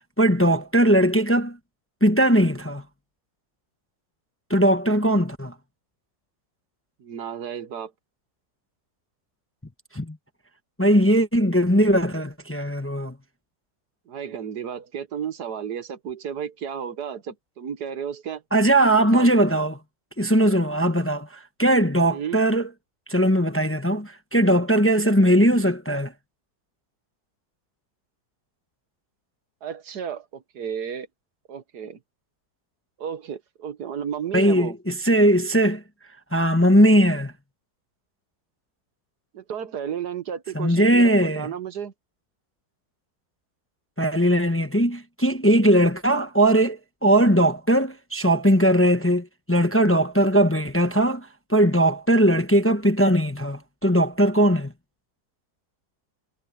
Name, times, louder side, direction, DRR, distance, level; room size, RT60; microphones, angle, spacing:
voice 1, 0.2-1.6 2.0-2.8 4.5-5.5 9.9-10.2 10.8-13.2 18.5-19.8 20.2-22.7 23.1-26.1 34.3-35.8 36.3-37.3 40.5-41.5 44.0-54.7, right 1 dB, 10° left, 0.9 m, -19 dB
voice 2, 7.0-7.9 14.1-18.4 19.1-19.5 20.7-20.9 22.0-22.4 29.6-31.1 31.5-32.0 33.0-34.8 39.3-41.9, right 8 dB, 90° right, 1.8 m, -33 dB
omnidirectional pair, 1.7 m